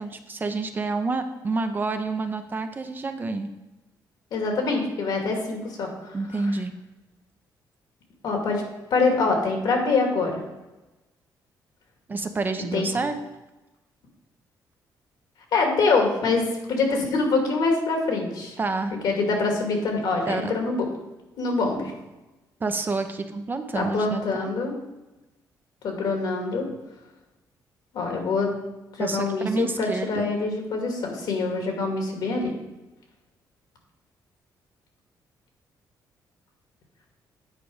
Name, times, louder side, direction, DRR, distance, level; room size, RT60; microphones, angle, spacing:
voice 1, 0.0-3.5 6.1-6.7 12.1-13.1 18.6-19.0 20.2-20.5 22.6-24.5 29.0-30.3, right 3 dB, 25° right, 7 dB, 0.6 m, -28 dB
voice 2, 4.3-6.1 8.2-8.6 8.9-10.4 12.7-12.9 15.5-18.5 19.0-20.9 21.4-21.9 23.7-24.7 25.8-26.7 27.9-28.5 29.0-32.5, left 3 dB, 75° left, 2 dB, 2.0 m, -24 dB
9.2 x 4.9 x 4.9 m, 1.0 s
cardioid pair, 130°, 7 cm